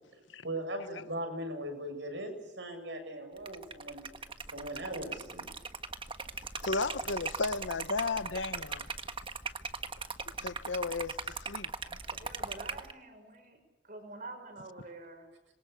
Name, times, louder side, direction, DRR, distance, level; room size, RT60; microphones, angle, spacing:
voice 1, 0.4-4.1 4.5-5.5, right 1 dB, 75° right, 7.4 m, -39 dB
Liquid, 3.4-12.9, right 4 dB, 30° right, 1.5 m, -39 dB
voice 2, 6.6-8.9 10.4-11.7, left 4 dB, 85° left, 1.1 m, -34 dB
voice 3, 12.0-13.6 13.8-15.3, right 2 dB, 45° right, 6.1 m, -47 dB
26.5 x 24.0 x 8.3 m
head